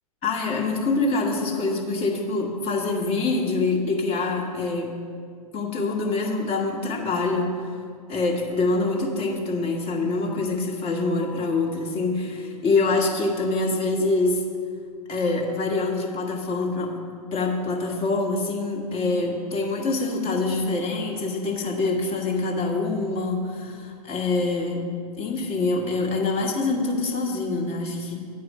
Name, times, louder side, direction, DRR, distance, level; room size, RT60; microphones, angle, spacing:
voice 1, 0.2-4.9 5.5-7.7 8.1-14.4 15.1-17.0 17.3-28.3, left 3 dB, 30° left, 1 dB, 1.5 m, -25 dB
9.3 x 4.7 x 7.3 m, 2.2 s
hypercardioid pair, 115°, 19 cm